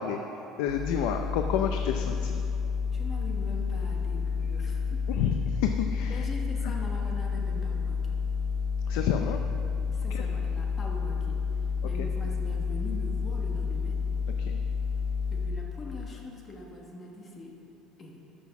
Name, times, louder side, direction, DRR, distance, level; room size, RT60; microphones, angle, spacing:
voice 1, 0.0-2.4 5.1-6.3 8.9-9.4 10.1-10.2 12.0-12.1 14.4-14.6, left 8 dB, 70° left, 5 dB, 0.5 m, -30 dB
sound 1, 0.7-15.5, left 5 dB, 55° left, 1.5 m, -30 dB
voice 2, 2.9-5.2 6.1-8.2 9.9-11.4 11.8-14.0 15.3-17.6 18.0-18.2, left 1 dB, 20° left, 0 dB, 1.3 m, -42 dB
13.0 x 6.2 x 5.9 m, 2.8 s
cardioid pair, 180°, 0 cm